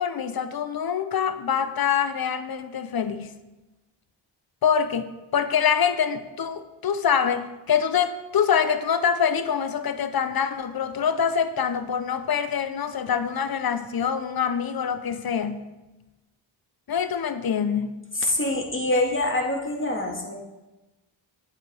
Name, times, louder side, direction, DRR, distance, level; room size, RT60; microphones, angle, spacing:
voice 1, 0.0-3.3 4.6-15.7 16.9-18.0, left 7 dB, 45° left, 11 dB, 0.8 m, -25 dB
voice 2, 18.3-20.3, left 1 dB, 25° left, 1 dB, 1.9 m, -25 dB
8.9 x 8.2 x 3.5 m, 1.1 s
cardioid pair, 60°, 49 cm